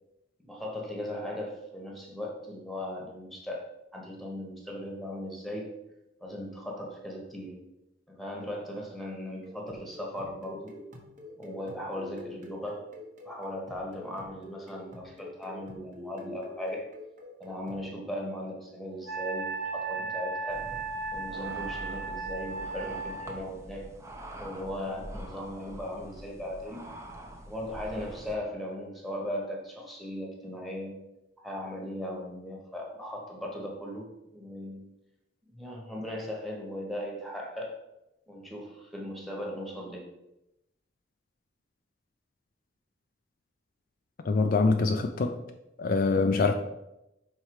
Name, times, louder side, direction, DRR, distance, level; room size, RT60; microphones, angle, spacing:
voice 1, 0.4-3.7 3.9-5.7 6.2-7.6 8.1-10.7 11.4-12.8 13.2-16.9 17.4-20.6 21.1-23.9 24.4-26.8 27.5-31.1 31.4-34.1 34.3-34.9 35.5-37.8 38.3-40.1, left 1 dB, ahead, 1.2 m, -38 dB
sound 1, 9.4-17.9, left 1 dB, 45° right, 1.1 m, -47 dB
Wind instrument woodwind instrument, 19.1-23.3, right 4 dB, 85° right, 1.5 m, -35 dB
sound 2, 20.5-28.4, equal, 15° right, 0.7 m, -45 dB
voice 2, 44.2-45.4 45.8-46.5, left 3 dB, 50° left, 0.4 m, -24 dB
5.6 x 4.4 x 4.7 m
head